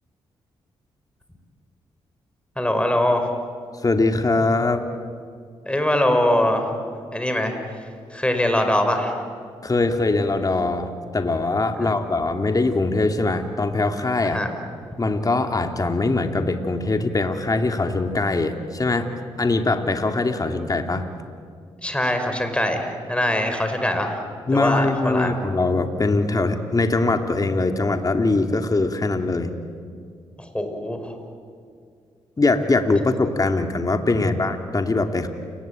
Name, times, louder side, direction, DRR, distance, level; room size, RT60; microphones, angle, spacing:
voice 1, 2.6-3.3 5.7-6.7 7.1-7.5 8.1-9.2 11.8-11.9 14.2-14.5 21.8-24.2 24.5-25.4 30.5-31.1, left 1 dB, 10° left, 6 dB, 5.6 m, -22 dB
voice 2, 3.8-4.8 9.6-14.4 15.0-19.1 19.4-21.1 24.5-29.5 32.4-35.3, left 3 dB, 35° left, 6 dB, 2.7 m, -22 dB
29.5 x 20.5 x 9.1 m, 2.2 s
supercardioid pair, 55°, 11 cm